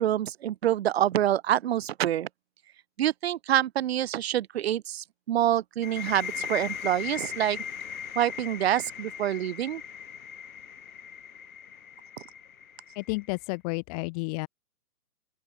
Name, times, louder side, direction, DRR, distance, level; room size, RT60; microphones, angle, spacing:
voice 1, 0.0-2.3 3.0-7.6 8.2-9.8, right 12 dB, 45° right, 0.8 m, -26 dB
sound 1, 5.8-13.4, left 8 dB, 65° left, 3.7 m, -39 dB
voice 2, 12.9-14.5, left 30 dB, 25° left, 1.7 m, -31 dB
open air
hypercardioid pair, 140°, 46 cm